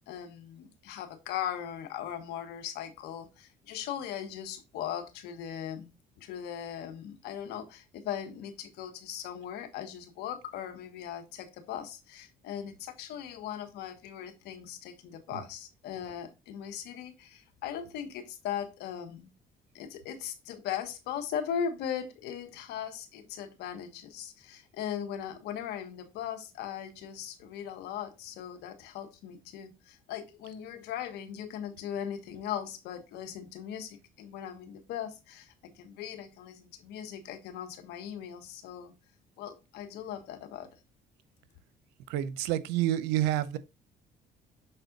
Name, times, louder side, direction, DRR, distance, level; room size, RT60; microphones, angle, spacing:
voice 1, 0.1-5.9 6.2-19.3 19.7-38.9 39.4-40.7, left 9 dB, 80° left, 1.4 m, -39 dB
voice 2, 42.1-43.6, right 13 dB, 90° right, 0.6 m, -28 dB
6.8 x 4.2 x 3.9 m
supercardioid pair, 80°, 17 cm